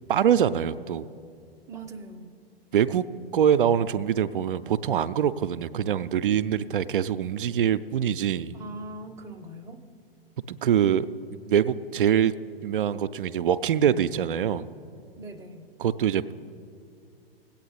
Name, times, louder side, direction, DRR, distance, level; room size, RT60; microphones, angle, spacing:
voice 1, 0.1-1.1 2.7-3.0 3.3-8.6 10.5-11.1 11.5-12.3 12.6-14.7 15.8-16.3, right 9 dB, 60° right, 13 dB, 0.5 m, -24 dB
voice 2, 1.7-2.3 8.5-9.8 15.2-15.7, right 2 dB, 10° right, 4 dB, 0.6 m, -41 dB
20.5 x 8.6 x 4.0 m, 2.4 s
figure-of-eight pair, 105°, 30 cm